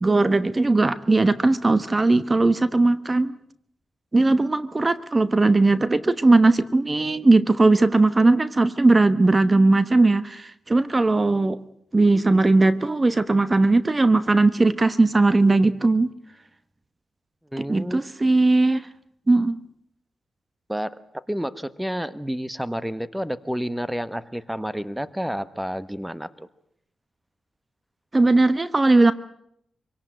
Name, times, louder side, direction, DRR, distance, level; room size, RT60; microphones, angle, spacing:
voice 1, 0.0-3.3 4.1-11.6 11.9-16.1 17.6-18.9 19.3-19.6 28.1-29.1, right 2 dB, 30° right, 14 dB, 1.1 m, -19 dB
voice 2, 17.5-18.0 20.7-21.0 21.3-26.5, equal, 5° right, 15 dB, 1.1 m, -30 dB
25.5 x 18.0 x 9.0 m, 0.74 s
cardioid pair, 70°, 0 cm